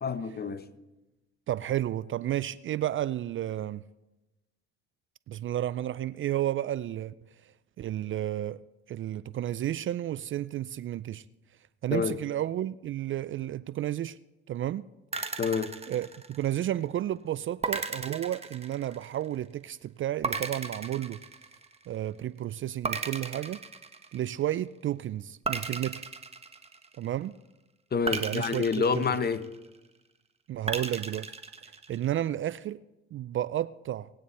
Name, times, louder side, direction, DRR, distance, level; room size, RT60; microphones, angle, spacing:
voice 1, 0.0-0.7 11.9-12.1 15.4-15.7 27.9-29.5, left 5 dB, 30° left, 1.0 m, -28 dB
voice 2, 1.5-3.8 5.3-7.1 7.8-8.6 8.9-11.2 11.8-14.2 14.5-14.9 15.9-21.2 21.9-23.6 24.1-26.1 27.0-27.3 28.1-28.6 28.9-29.0 30.5-31.3 31.9-32.8 33.1-34.1, right 12 dB, 40° right, 0.4 m, -32 dB
sound 1, 15.1-16.7 17.6-19.3 20.2-22.0 22.8-24.5 25.4-27.2 28.1-29.8 30.7-32.1, right 4 dB, 20° right, 1.3 m, -35 dB
19.5 x 9.2 x 4.2 m
supercardioid pair, 70°, 31 cm